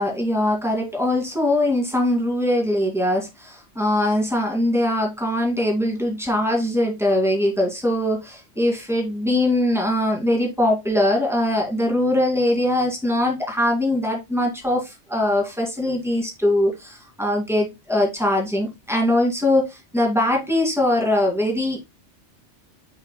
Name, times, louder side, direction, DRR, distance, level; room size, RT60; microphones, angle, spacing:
voice 1, 0.0-21.8, left 1 dB, ahead, 2.4 m, -22 dB
8.5 x 5.6 x 2.3 m
omnidirectional pair, 1.2 m